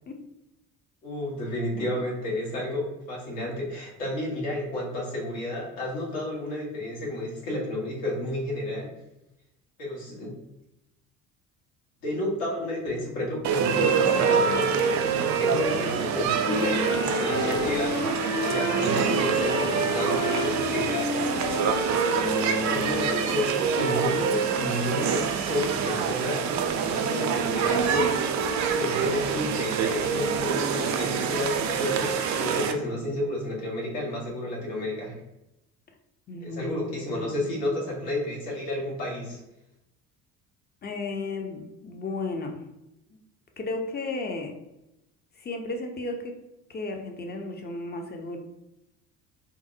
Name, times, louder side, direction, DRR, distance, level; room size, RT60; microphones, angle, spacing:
voice 1, 1.0-8.9 9.8-10.3 12.0-14.6 15.1-21.7 22.6-26.5 26.8-28.2 28.5-35.1 36.4-39.4, left 1 dB, 75° left, -4 dB, 1.4 m, -31 dB
sound 1, 13.4-32.7, right 6 dB, 45° right, 0.4 m, -26 dB
sound 2, 16.4-23.4, left 3 dB, 45° left, 1.1 m, -31 dB
voice 2, 36.3-37.9 40.8-42.6 43.6-44.5 45.4-46.3 46.7-48.4, left 3 dB, 25° left, 3 dB, 0.6 m, -34 dB
3.9 x 2.0 x 2.6 m, 0.90 s
hypercardioid pair, 60°, 42 cm